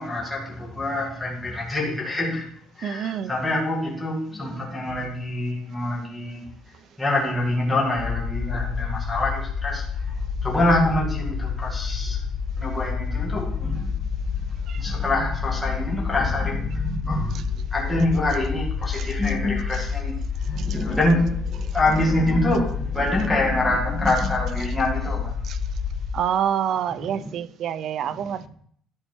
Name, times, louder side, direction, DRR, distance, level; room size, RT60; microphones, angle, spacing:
voice 1, 0.0-2.5 2.8-6.5 7.0-12.2 12.6-25.3 27.0-27.3 28.1-28.3, left 1 dB, 5° left, 2.1 m, -26 dB
voice 2, 2.8-3.3 14.7-14.8 18.9-19.1 20.6-20.8 25.4-25.6 26.1-28.5, right 9 dB, 55° right, 0.5 m, -27 dB
sound 1, 8.0-26.1, left 6 dB, 65° left, 1.6 m, -29 dB
12.5 x 4.4 x 4.5 m
cardioid pair, 135°, 0 cm